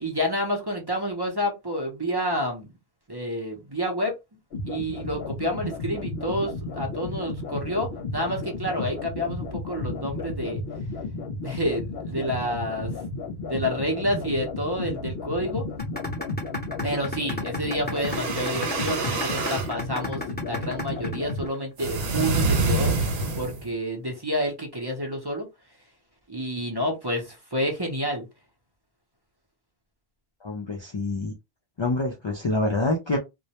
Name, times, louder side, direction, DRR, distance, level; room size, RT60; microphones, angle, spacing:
voice 1, 0.0-2.7 3.1-4.1 4.7-10.6 11.4-12.9 13.5-15.6 16.8-22.9 23.3-25.5 26.3-28.3, equal, 30° right, 0.6 m, -29 dB
sound 1, 4.5-21.5, left 3 dB, 70° left, 0.8 m, -33 dB
sound 2, 15.8-21.8, left 2 dB, 10° left, 0.7 m, -33 dB
sound 3, 17.9-19.7 21.8-23.7, right 3 dB, 75° right, 0.8 m, -26 dB
voice 2, 30.4-31.3 31.8-33.2, left 2 dB, 50° left, 0.3 m, -26 dB
2.2 x 2.1 x 2.8 m
omnidirectional pair, 1.0 m